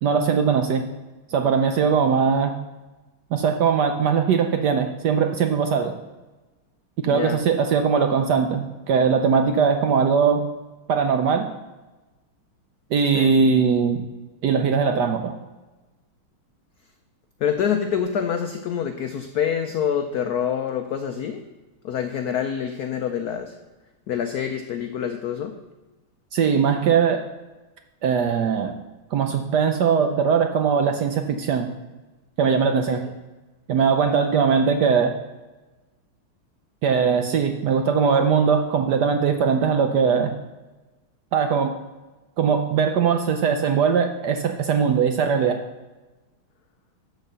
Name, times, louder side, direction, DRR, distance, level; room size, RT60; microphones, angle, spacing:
voice 1, 0.0-0.9 1.3-2.6 3.3-5.9 7.0-10.4 10.9-11.5 12.9-14.0 14.4-15.3 26.3-27.2 28.0-28.8 29.1-31.7 32.4-33.0 33.7-35.1 36.8-40.3 41.3-41.7 42.4-45.6, right 6 dB, 70° right, 6 dB, 1.0 m, -20 dB
voice 2, 7.1-7.4 13.1-13.3 17.4-21.4 21.8-23.5 24.1-25.5 32.7-33.0, left 8 dB, 80° left, 7 dB, 0.8 m, -26 dB
12.5 x 4.1 x 6.7 m, 1.1 s
omnidirectional pair, 2.3 m